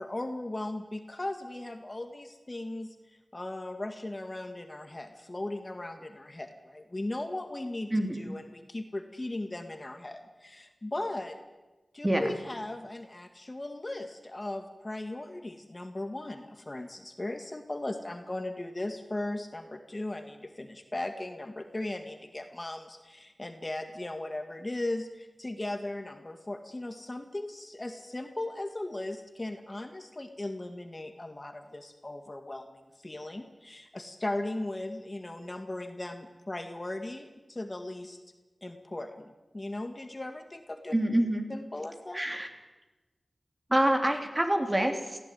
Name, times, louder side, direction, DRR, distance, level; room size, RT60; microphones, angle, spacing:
voice 1, 0.0-11.4 11.9-38.2 38.6-40.9 41.5-42.2, left 1 dB, 30° left, 7 dB, 1.8 m, -37 dB
voice 2, 40.9-41.5 42.1-42.5 43.7-45.2, right 1 dB, 20° right, 4 dB, 3.3 m, -26 dB
22.5 x 15.5 x 9.4 m, 1.2 s
wide cardioid pair, 75°, 0 cm